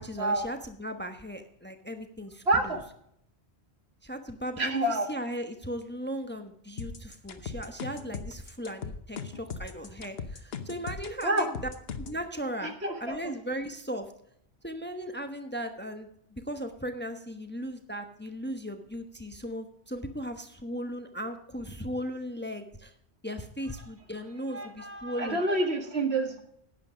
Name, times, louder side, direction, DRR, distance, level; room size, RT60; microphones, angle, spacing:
voice 1, 0.0-2.8 4.0-4.8 5.1-11.5 12.0-12.7 13.0-14.1 14.6-22.9 23.2-25.4, equal, 10° left, 7 dB, 1.0 m, -37 dB
voice 2, 2.5-2.8 4.6-5.1 11.2-11.5 12.6-13.3 24.5-26.4, right 2 dB, 75° right, 4 dB, 2.1 m, -28 dB
sound 1, 6.8-12.2, left 5 dB, 70° left, 1.2 m, -38 dB
11.5 x 9.0 x 5.0 m, 0.69 s
omnidirectional pair, 1.1 m